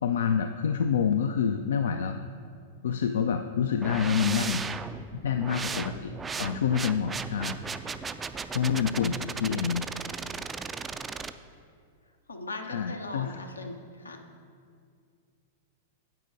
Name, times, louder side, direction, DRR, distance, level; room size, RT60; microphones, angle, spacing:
voice 1, 0.0-2.2 2.8-4.7 5.2-6.1 6.4-7.6 8.5-9.9 12.7-13.4, left 7 dB, 70° left, 7 dB, 0.3 m, -27 dB
sound 1, 3.8-11.3, right 5 dB, 15° right, 0.3 m, -36 dB
voice 2, 5.4-6.1 12.3-14.2, left 2 dB, 85° left, 4 dB, 0.8 m, -40 dB
10.5 x 7.8 x 2.6 m, 2.2 s
figure-of-eight pair, 100°, 0 cm